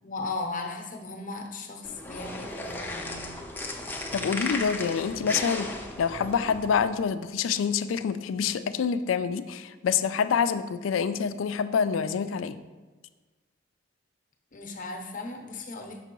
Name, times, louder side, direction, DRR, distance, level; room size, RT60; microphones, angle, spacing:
voice 1, 0.0-3.3 14.5-16.0, left 3 dB, 45° left, 3 dB, 0.8 m, -37 dB
sound 1, 1.8-6.9, left 2 dB, 10° left, 0.6 m, -35 dB
voice 2, 4.1-5.7 6.0-12.5, left 6 dB, 80° left, 11 dB, 0.3 m, -27 dB
6.9 x 5.3 x 3.0 m, 1.3 s
head